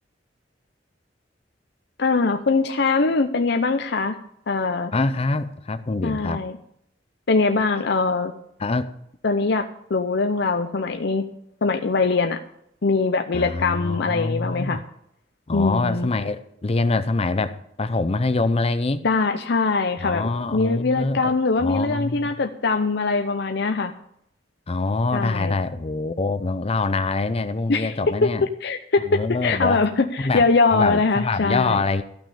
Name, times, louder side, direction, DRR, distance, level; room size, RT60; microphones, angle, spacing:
voice 1, 2.0-4.1 4.5-4.9 6.0-6.6 7.3-8.3 9.2-11.2 11.6-12.4 12.8-14.8 15.5-16.1 19.0-23.9 25.1-25.5 27.7-28.0 28.6-31.8, left 3 dB, 65° left, 0.7 m, -22 dB
voice 2, 4.9-6.4 8.6-8.9 13.3-14.8 15.5-19.0 20.0-21.3 21.6-22.3 24.7-28.5 29.1-29.8 30.2-30.5 30.7-32.0, left 3 dB, 35° left, 0.6 m, -24 dB
13.5 x 6.2 x 8.4 m
head